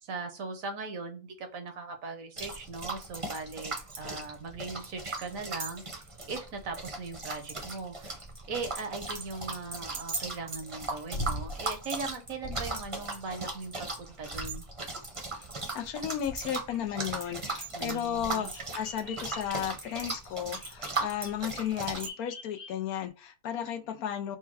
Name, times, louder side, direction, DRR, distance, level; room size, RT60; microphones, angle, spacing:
voice 1, 0.0-5.8 6.3-8.2 8.5-14.6 17.7-18.5, right 3 dB, 70° right, 1.3 m, -39 dB
sound 1, 2.4-22.1, right 3 dB, 30° right, 0.7 m, -38 dB
sound 2, 11.1-11.8 12.4-13.0 14.3-15.0 16.2-16.7 18.2-18.6 21.0-21.1, equal, 30° left, 0.6 m, -39 dB
voice 2, 15.7-24.4, left 9 dB, 80° left, 1.2 m, -34 dB
Bird vocalization bird call bird song, 16.5-23.1, left 3 dB, 55° left, 1.6 m, -49 dB
4.4 x 2.3 x 4.6 m
omnidirectional pair, 1.6 m